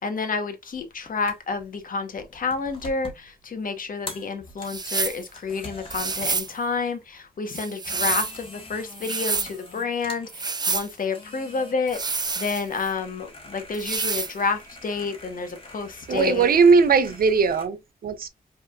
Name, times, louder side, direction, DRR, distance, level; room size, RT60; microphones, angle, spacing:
voice 1, 0.0-16.5, left 4 dB, 65° left, 1.1 m, -29 dB
sound 1, 0.7-17.7, left 2 dB, 35° left, 1.5 m, -45 dB
sound 2, 4.6-5.2 5.9-6.5 7.5-8.4 8.9-9.5 10.3-10.9 11.9-12.9 13.7-14.3, right 4 dB, 25° right, 0.5 m, -28 dB
voice 2, 16.1-18.3, right 5 dB, 75° right, 0.6 m, -19 dB
5.5 x 3.5 x 2.4 m
wide cardioid pair, 130°, 16 cm